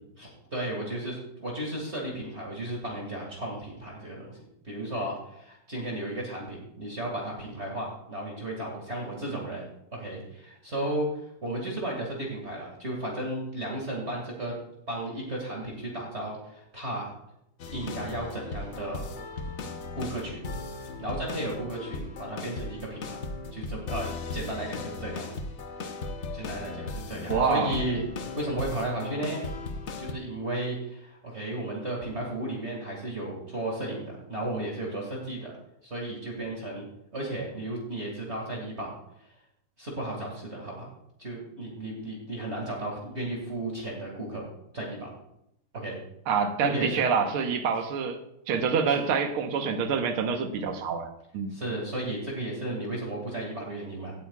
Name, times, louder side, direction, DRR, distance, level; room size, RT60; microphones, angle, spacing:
voice 1, 0.2-11.1 11.4-14.5 14.9-17.1 17.7-19.0 19.9-20.4 21.0-23.2 23.5-25.4 26.3-28.0 28.4-29.5 30.0-35.5 35.8-38.9 39.8-40.9 41.2-44.4 44.7-45.1 45.7-46.0 46.6-47.0 51.5-54.1, right 1 dB, 30° right, -2 dB, 2.2 m, -34 dB
sound 1, 17.6-30.1, left 3 dB, 80° left, 0.6 m, -37 dB
voice 2, 27.3-27.8 46.3-48.2 48.5-51.5, right 6 dB, 75° right, 6 dB, 1.9 m, -26 dB
16.5 x 8.9 x 2.3 m, 0.80 s
omnidirectional pair, 2.4 m